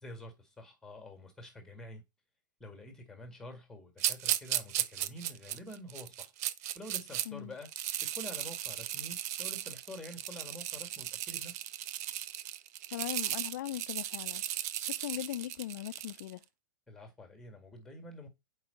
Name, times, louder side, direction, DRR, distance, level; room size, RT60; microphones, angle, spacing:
voice 1, 0.0-2.0 2.6-6.3 6.8-7.7 8.0-11.6 16.9-18.3, left 1 dB, 5° left, 1.9 m, -48 dB
sound 1, 4.0-7.3 7.6-16.3, right 13 dB, 50° right, 0.5 m, -36 dB
voice 2, 12.9-14.4 14.8-16.4, left 14 dB, 60° left, 0.3 m, -39 dB
4.8 x 4.2 x 5.6 m
hypercardioid pair, 125°, 11 cm